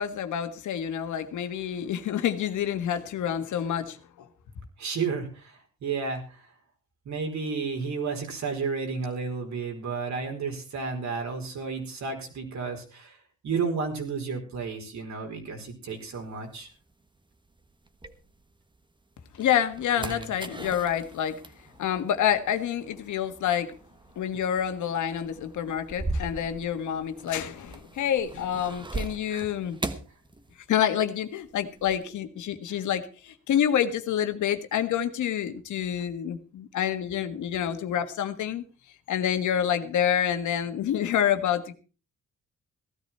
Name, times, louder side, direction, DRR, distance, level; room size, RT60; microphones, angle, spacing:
voice 1, 0.0-4.3 19.4-21.4 21.8-23.7 24.2-29.8 30.7-38.6 39.1-41.7, left 9 dB, 80° left, 1.6 m, -28 dB
voice 2, 4.8-6.5 7.0-13.2 13.4-16.7 20.0-20.3 29.3-29.5 32.7-32.8, right 5 dB, 70° right, 4.6 m, -32 dB
sound 1, 16.0-18.8 19.2-31.0 31.2-32.1, right 2 dB, 15° right, 1.3 m, -40 dB
16.5 x 13.0 x 4.4 m
cardioid pair, 95°, 29 cm